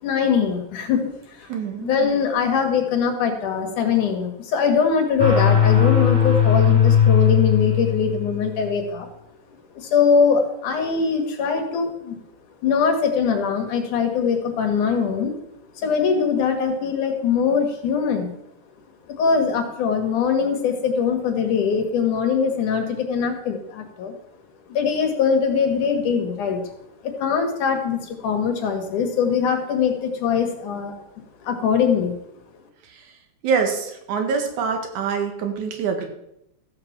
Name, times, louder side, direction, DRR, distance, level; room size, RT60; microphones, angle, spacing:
voice 1, 0.0-1.1 1.4-1.5 1.8-9.1 9.7-12.2 12.6-15.3 15.7-18.3 19.2-24.1 24.7-26.6 27.0-30.9 31.4-32.1, left 6 dB, 85° left, 5 dB, 3.3 m, -22 dB
voice 2, 1.5-1.9 33.4-36.1, right 6 dB, 80° right, 4 dB, 3.1 m, -25 dB
sound 1, 5.2-8.6, left 8 dB, 15° right, 2.9 m, -18 dB
14.0 x 5.9 x 7.4 m, 0.81 s
omnidirectional pair, 3.4 m